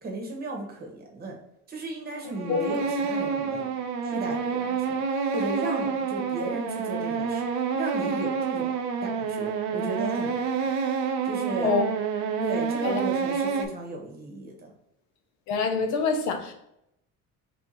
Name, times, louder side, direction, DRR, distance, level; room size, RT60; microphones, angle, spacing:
voice 1, 0.0-1.4 1.7-3.7 4.0-5.0 5.3-7.4 7.7-8.7 9.0-10.5 11.2-11.7 12.4-14.7, right 2 dB, 30° right, 1.2 m, -35 dB
sound 1, 2.1-13.7, right 5 dB, 70° right, 0.6 m, -28 dB
voice 2, 15.5-16.5, left 4 dB, 70° left, 0.8 m, -25 dB
3.5 x 3.4 x 4.3 m
cardioid pair, 140°, 29 cm